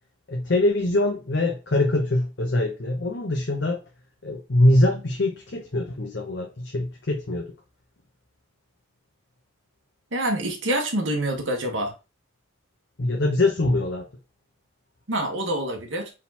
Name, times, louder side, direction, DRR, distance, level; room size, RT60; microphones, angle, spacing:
voice 1, 0.3-3.8 4.2-7.5 13.0-14.1, left 1 dB, 60° left, 0.8 m, -23 dB
voice 2, 10.1-11.9 15.1-16.1, right 1 dB, 70° right, 1.3 m, -26 dB
4.3 x 3.7 x 2.8 m
head